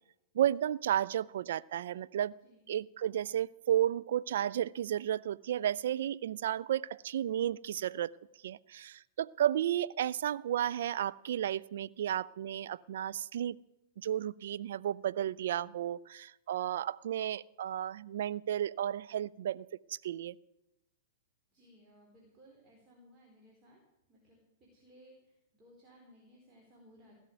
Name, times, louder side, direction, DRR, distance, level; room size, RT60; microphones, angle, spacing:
voice 1, 0.3-2.4 2.7-8.1 8.4-13.6 14.0-20.4, right 11 dB, 60° right, 16 dB, 0.4 m, -33 dB
voice 2, 2.4-2.7 21.5-23.8 24.1-27.2, equal, 25° right, -2 dB, 4.1 m, -61 dB
17.5 x 6.5 x 9.2 m, 0.90 s
figure-of-eight pair, 105°, 0 cm